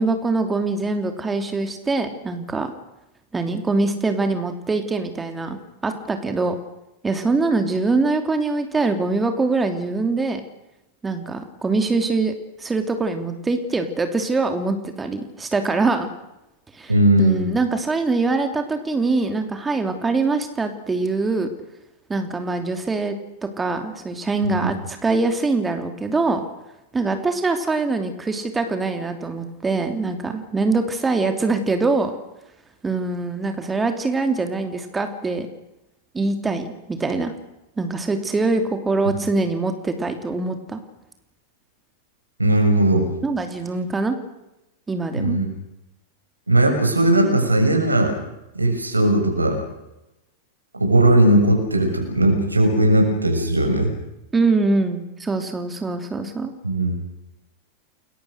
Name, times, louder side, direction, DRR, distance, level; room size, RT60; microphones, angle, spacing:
voice 1, 0.0-2.7 3.3-5.6 5.8-6.5 7.0-10.4 11.0-16.1 16.7-16.9 17.2-21.5 22.1-23.1 23.6-26.4 26.9-32.1 32.8-35.5 36.1-37.3 37.8-40.8 43.2-44.2 44.9-45.4 54.3-56.5, right 3 dB, 15° right, 6 dB, 2.8 m, -23 dB
voice 2, 16.9-17.4 24.4-24.7 42.4-43.1 45.2-45.5 46.5-48.1 48.5-49.6 50.8-53.9 56.6-56.9, right 1 dB, 80° right, 4 dB, 6.5 m, -18 dB
29.5 x 21.5 x 6.5 m, 0.91 s
figure-of-eight pair, 90°, 0 cm